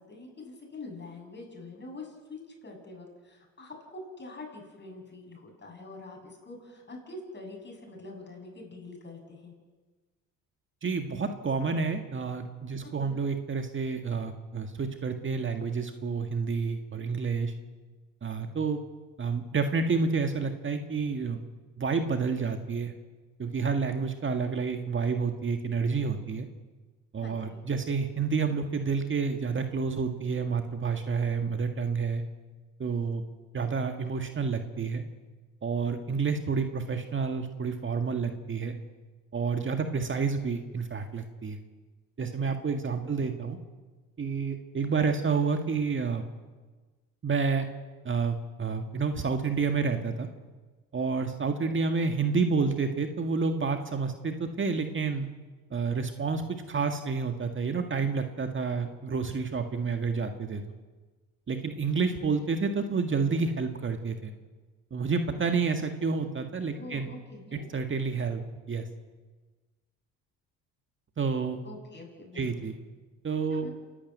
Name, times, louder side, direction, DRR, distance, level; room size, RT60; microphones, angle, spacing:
voice 1, 0.1-9.5 13.0-13.2 27.2-27.6 43.2-43.3 49.9-50.0 66.7-67.6 71.6-72.7 73.5-73.7, left 2 dB, 30° left, 1 dB, 7.7 m, -45 dB
voice 2, 10.8-17.5 18.2-18.8 19.2-21.4 21.8-22.9 23.4-26.5 27.1-32.2 32.8-33.2 33.5-35.0 35.6-38.7 39.3-41.6 42.2-43.6 44.2-46.2 47.2-47.7 48.1-50.3 50.9-55.3 55.7-60.6 61.5-64.3 64.9-67.1 67.7-68.4 68.7-68.9 71.2-71.6 72.3-72.8 73.2-73.7, right 5 dB, 35° right, 6 dB, 1.8 m, -29 dB
27.5 x 12.0 x 9.3 m, 1.3 s
supercardioid pair, 80°, 35 cm